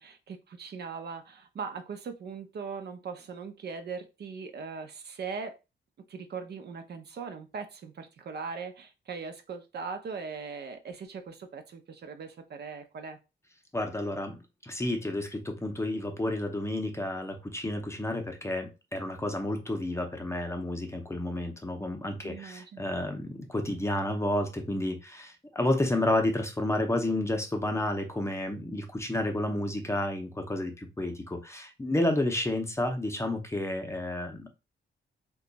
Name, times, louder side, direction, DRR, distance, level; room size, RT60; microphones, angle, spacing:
voice 1, 0.0-5.5 6.1-13.2 22.2-22.8, right 5 dB, 55° right, 0.6 m, -40 dB
voice 2, 13.7-34.5, left 1 dB, 15° left, 0.6 m, -31 dB
2.8 x 2.3 x 3.9 m
wide cardioid pair, 125°, 20 cm